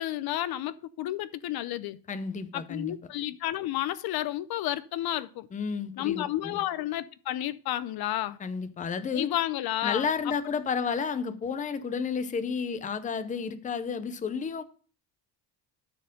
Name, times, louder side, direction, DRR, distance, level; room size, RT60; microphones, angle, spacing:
voice 1, 0.0-2.0 2.5-5.5 6.0-8.4 9.1-10.3, left 13 dB, 60° left, 0.6 m, -31 dB
voice 2, 2.1-3.0 5.5-6.6 8.4-9.3 9.8-14.6, left 6 dB, 20° left, 0.6 m, -31 dB
13.0 x 4.5 x 5.1 m
cardioid pair, 170°, 42 cm